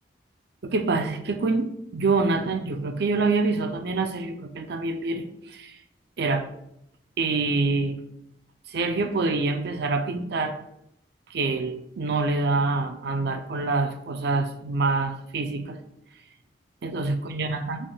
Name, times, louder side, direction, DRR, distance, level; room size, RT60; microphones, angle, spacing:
voice 1, 0.6-5.8 6.2-6.5 7.2-8.0 8.7-10.6 11.3-15.8 16.8-17.8, right 3 dB, 65° right, 7 dB, 0.5 m, -26 dB
5.2 x 3.3 x 2.3 m, 0.76 s
head